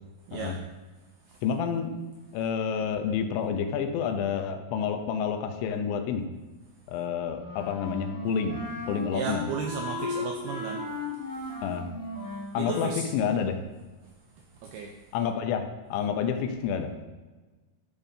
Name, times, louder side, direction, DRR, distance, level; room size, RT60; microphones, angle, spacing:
voice 1, 0.3-0.6 1.3-1.4 9.1-10.8 11.3-11.5 12.3-13.1 14.0-15.1, right 5 dB, 85° right, 2 dB, 2.2 m, -36 dB
voice 2, 1.4-2.0 2.3-6.3 6.9-9.5 11.6-11.9 12.5-13.6 15.1-17.1, left 7 dB, 85° left, 6 dB, 3.2 m, -29 dB
Wind instrument woodwind instrument, 7.4-13.0, left 2 dB, 25° left, 2.8 m, -36 dB
13.0 x 7.0 x 2.7 m, 1.2 s
omnidirectional pair, 5.2 m